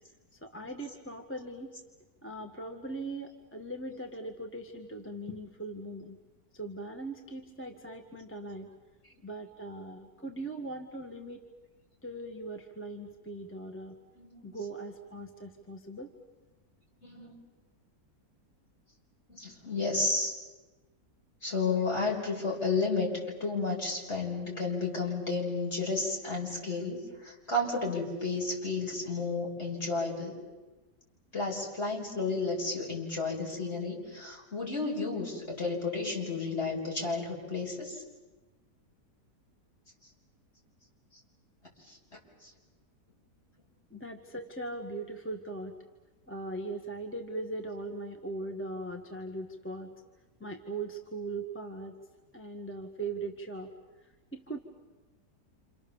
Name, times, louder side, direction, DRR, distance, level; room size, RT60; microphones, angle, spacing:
voice 1, 0.4-1.8 2.2-6.2 6.5-8.7 9.2-11.4 12.0-13.9 14.4-16.1 43.9-45.7 46.3-49.9 50.4-51.9 52.3-53.7 54.3-54.6, right 2 dB, 10° left, 2 dB, 1.6 m, -40 dB
voice 2, 17.0-17.3 19.3-20.3 21.4-30.4 31.3-38.0 41.9-42.0 42.4-42.5, left 3 dB, 40° left, -2 dB, 6.1 m, -32 dB
28.5 x 27.5 x 7.2 m, 1.2 s
omnidirectional pair, 1.8 m